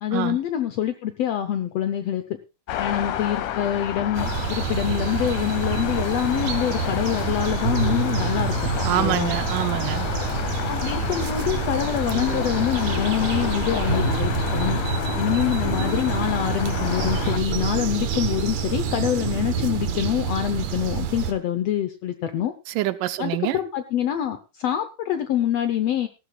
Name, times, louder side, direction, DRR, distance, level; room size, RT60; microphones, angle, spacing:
voice 1, 0.0-2.2 2.8-8.6 8.9-9.3 10.7-14.8 15.2-22.5 23.2-26.1, left 11 dB, 75° left, 1.5 m, -25 dB
sound 1, 2.7-17.4, left 11 dB, 90° left, 2.6 m, -31 dB
sound 2, 3.6-20.3, right 2 dB, 10° left, 7.6 m, -31 dB
sound 3, 4.1-21.3, right 8 dB, 65° right, 2.2 m, -29 dB
voice 2, 8.8-10.1 22.8-23.6, right 15 dB, 90° right, 2.4 m, -25 dB
18.5 x 13.5 x 2.3 m
omnidirectional pair, 3.7 m